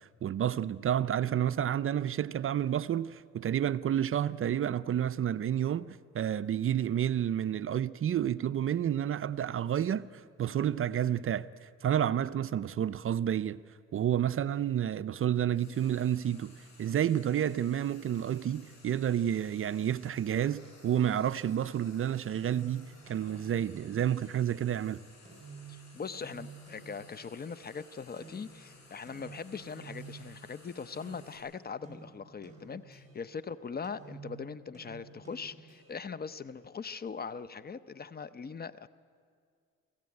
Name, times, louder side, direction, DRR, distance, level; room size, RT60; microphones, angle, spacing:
voice 1, 0.0-13.6 13.9-25.0, right 10 dB, 45° right, 0.5 m, -30 dB
Frying (food), 15.5-31.4, left 3 dB, 60° left, 7.9 m, -58 dB
sound 1, 22.3-27.6 28.2-33.4 33.8-36.2, right 4 dB, 25° right, 5.0 m, -52 dB
voice 2, 25.7-38.9, left 5 dB, 30° left, 0.7 m, -41 dB
23.0 x 15.5 x 9.6 m
cardioid pair, 90°, 30 cm